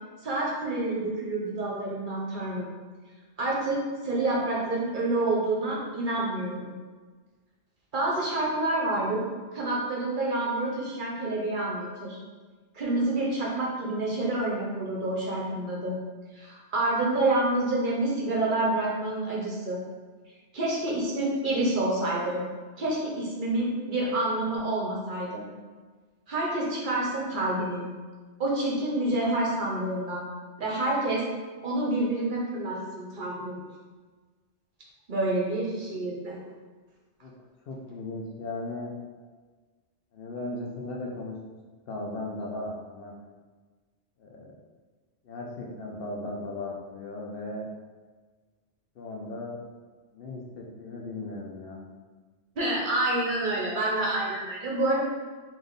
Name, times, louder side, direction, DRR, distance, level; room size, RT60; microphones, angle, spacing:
voice 1, 0.2-2.7 3.4-6.7 7.9-9.2 9.5-12.2 12.7-15.9 16.3-19.8 20.5-22.4 22.8-25.4 26.3-27.9 28.4-30.2 30.6-31.2 31.6-33.6 35.1-36.4 52.6-55.0, right 2 dB, 50° right, -3 dB, 0.8 m, -28 dB
voice 2, 37.7-38.9 40.1-41.4 41.9-43.1 44.2-44.6 45.2-47.7 49.0-49.6 50.1-51.8, left 2 dB, 60° left, -1 dB, 0.7 m, -37 dB
3.4 x 2.6 x 3.9 m, 1.4 s
omnidirectional pair, 1.2 m